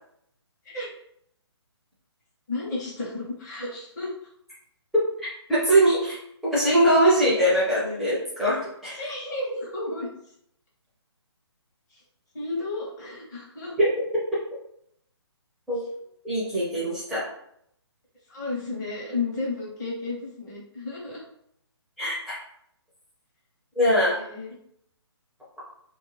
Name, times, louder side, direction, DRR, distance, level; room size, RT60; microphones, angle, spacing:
voice 1, 2.5-4.1 9.0-10.1 11.9-12.0 12.3-13.7 18.3-21.2 23.8-24.5, left 3 dB, 40° left, -4 dB, 1.0 m, -33 dB
voice 2, 5.2-6.2 6.4-9.0 13.8-13.9 15.7-15.8 16.2-17.3 22.0-22.3 23.8-24.2, right 1 dB, ahead, -11 dB, 0.6 m, -22 dB
2.5 x 2.1 x 3.2 m, 0.72 s
figure-of-eight pair, 140°, 15 cm